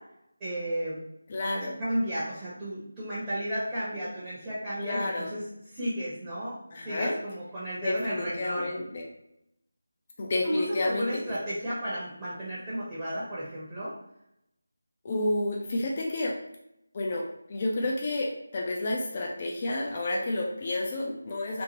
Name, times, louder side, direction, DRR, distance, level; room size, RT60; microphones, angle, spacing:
voice 1, 0.4-1.0 1.4-5.4 5.7-8.7 10.4-13.9 21.0-21.1, equal, 15° right, -11 dB, 0.7 m, -33 dB
voice 2, 1.3-1.8 4.8-5.3 6.7-7.1 7.8-9.1 10.2-11.4 15.0-16.3 16.9-17.2 17.5-21.6, left 2 dB, 30° left, -1 dB, 0.3 m, -30 dB
2.9 x 2.1 x 2.8 m, 0.79 s
figure-of-eight pair, 160°, 0 cm